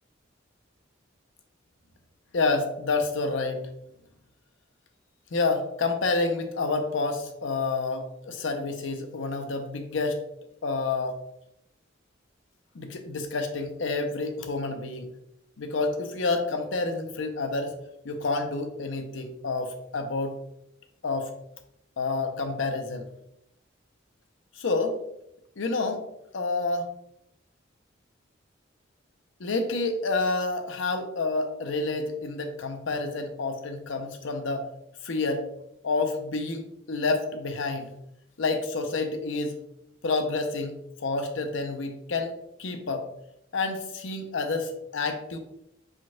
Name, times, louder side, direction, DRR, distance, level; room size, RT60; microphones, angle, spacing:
voice 1, 2.3-3.7 5.3-10.2 10.6-11.2 12.7-15.1 15.6-17.7 18.0-20.3 21.0-21.3 22.0-23.1 24.6-25.0 25.6-26.0 26.3-26.9 29.4-34.6 35.0-35.4 35.8-37.9 38.4-39.6 40.0-42.3 42.6-43.1 43.5-45.4, left 3 dB, 75° left, 6 dB, 0.7 m, -29 dB
5.0 x 3.8 x 2.3 m, 0.79 s
head